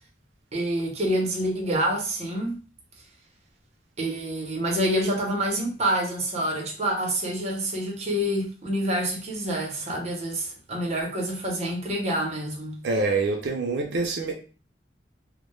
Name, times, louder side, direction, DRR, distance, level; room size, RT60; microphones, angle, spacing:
voice 1, 0.5-2.6 4.0-12.8, right 1 dB, 40° right, 0.7 m, -27 dB
voice 2, 12.8-14.3, right 3 dB, 85° right, 0.4 m, -25 dB
2.1 x 2.0 x 3.0 m
head